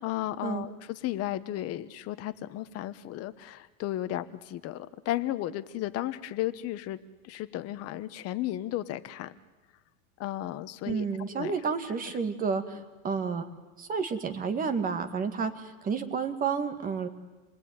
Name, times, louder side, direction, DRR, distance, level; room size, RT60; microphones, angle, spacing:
voice 1, 0.0-7.0 7.2-9.3 10.2-11.1 11.3-11.5 12.7-12.8, left 14 dB, 35° left, 13 dB, 1.1 m, -34 dB
voice 2, 10.9-12.8 13.0-13.5 13.8-17.1, right 5 dB, 20° right, 7 dB, 2.1 m, -30 dB
27.5 x 20.0 x 9.6 m, 1.2 s
supercardioid pair, 155°, 41 cm